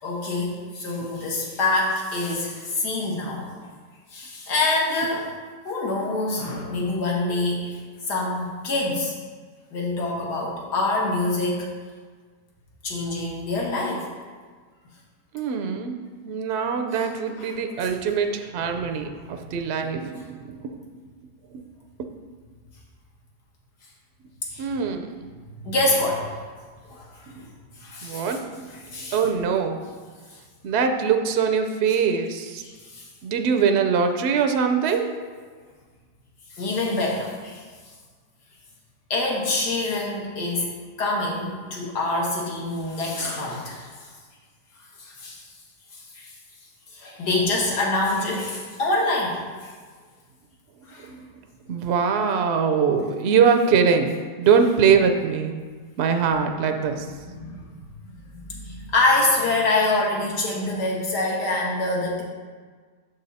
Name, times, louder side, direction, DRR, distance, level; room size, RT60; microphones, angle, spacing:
voice 1, 0.0-3.6 4.1-5.3 5.7-7.8 8.1-9.1 9.7-11.7 12.8-14.1 17.4-17.5 24.5-24.7 25.6-26.4 26.8-27.5 27.8-28.3 28.8-29.2 30.3-30.4 32.6-33.1 36.5-37.6 39.1-44.1 45.0-45.4 45.9-46.3 46.9-49.7 50.9-51.1 57.3-57.8 58.3-62.2, left 2 dB, 90° left, -3 dB, 1.9 m, -26 dB
voice 2, 15.3-20.7 21.5-21.7 24.6-25.3 27.3-27.4 28.0-28.8 29.1-29.8 30.6-32.6 33.2-35.1 51.0-51.2 51.7-55.6 56.0-57.1, right 6 dB, 75° right, 6 dB, 0.6 m, -23 dB
7.0 x 5.3 x 4.1 m, 1.5 s
omnidirectional pair, 1.7 m